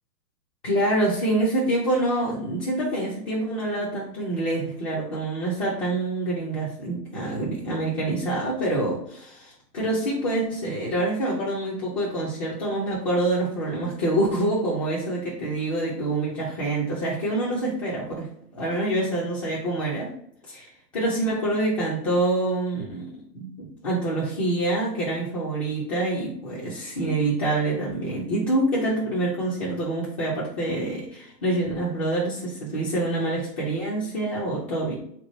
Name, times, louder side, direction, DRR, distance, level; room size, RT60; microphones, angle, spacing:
voice 1, 0.6-18.3 18.5-20.1 20.5-35.0, right 2 dB, 20° left, -6 dB, 0.5 m, -26 dB
3.7 x 2.9 x 3.0 m, 0.68 s
figure-of-eight pair, 125°, 50 cm